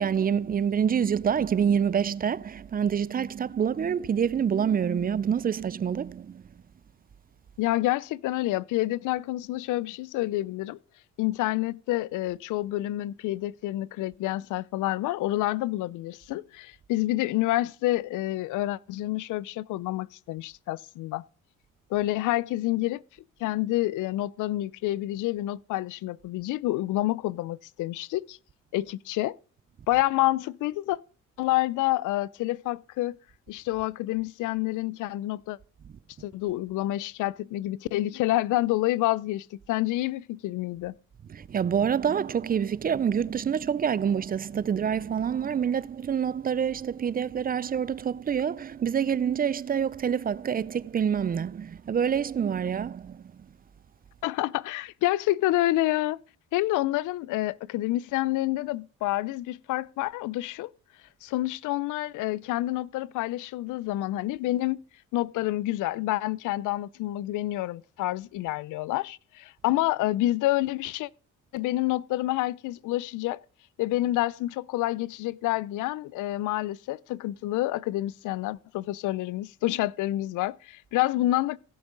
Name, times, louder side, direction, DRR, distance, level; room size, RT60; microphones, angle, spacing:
voice 1, 0.0-6.5 41.3-53.5, right 8 dB, 30° right, 0.4 m, -27 dB
voice 2, 7.6-10.8 11.2-21.2 21.9-23.0 23.4-28.4 28.7-29.4 29.9-31.0 31.4-33.2 33.5-35.6 36.2-40.9 54.2-56.2 56.5-60.7 61.2-64.8 65.1-71.1 71.5-73.4 73.8-81.6, left 16 dB, 85° left, 0.5 m, -28 dB
16.0 x 7.1 x 3.8 m
cardioid pair, 90°, 30 cm